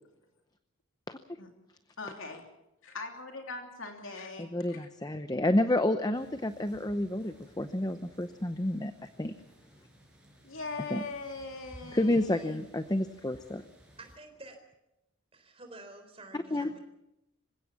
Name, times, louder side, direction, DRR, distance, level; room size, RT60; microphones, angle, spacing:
voice 1, 2.0-2.4 2.8-4.9 10.4-12.7, left 3 dB, 65° left, 3 dB, 3.1 m, -41 dB
voice 2, 4.4-8.9 9.2-9.3 10.9-11.0 11.8-13.6 16.5-16.7, left 1 dB, 15° left, 10 dB, 0.7 m, -29 dB
sound 1, 6.1-14.2, equal, 5° right, 5.2 m, -58 dB
voice 3, 14.0-14.6 15.3-16.8, right 2 dB, 25° right, 6 dB, 4.0 m, -49 dB
26.0 x 16.5 x 7.2 m, 0.90 s
head